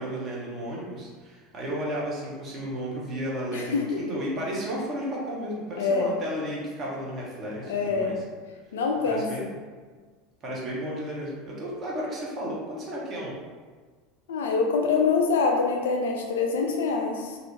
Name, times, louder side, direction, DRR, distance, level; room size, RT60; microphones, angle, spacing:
voice 1, 0.0-8.2 9.0-9.5 10.4-13.3, equal, 35° right, -5 dB, 0.8 m, -33 dB
voice 2, 3.5-4.0 5.8-6.1 7.7-8.1 8.7-9.3 14.3-17.4, left 4 dB, 65° left, 2 dB, 0.3 m, -25 dB
2.6 x 2.1 x 2.8 m, 1.5 s
figure-of-eight pair, 75°, 0 cm